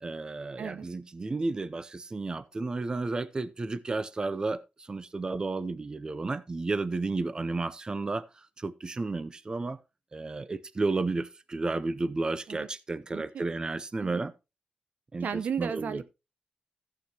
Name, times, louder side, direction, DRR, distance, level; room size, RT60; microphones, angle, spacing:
voice 1, 0.0-8.3 8.6-9.8 10.1-14.3 15.1-15.3 15.6-16.0, right 3 dB, 30° right, 0.5 m, -32 dB
voice 2, 13.1-13.5 14.0-14.2 15.2-16.1, right 7 dB, 75° right, 0.7 m, -34 dB
14.5 x 7.8 x 2.8 m
wide cardioid pair, 125°, 3 cm